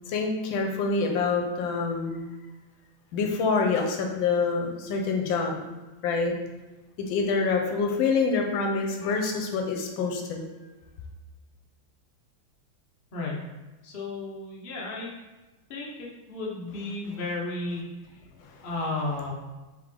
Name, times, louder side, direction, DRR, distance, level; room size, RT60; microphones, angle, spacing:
voice 1, 0.1-2.3 3.1-5.6 6.0-6.3 7.1-10.4 18.4-18.7, left 4 dB, 75° left, 2 dB, 1.3 m, -26 dB
voice 2, 13.8-15.1 15.7-15.9 16.3-17.8 18.6-19.3, left 2 dB, 60° left, -3 dB, 0.5 m, -33 dB
3.7 x 3.6 x 3.3 m, 1.1 s
omnidirectional pair, 2.3 m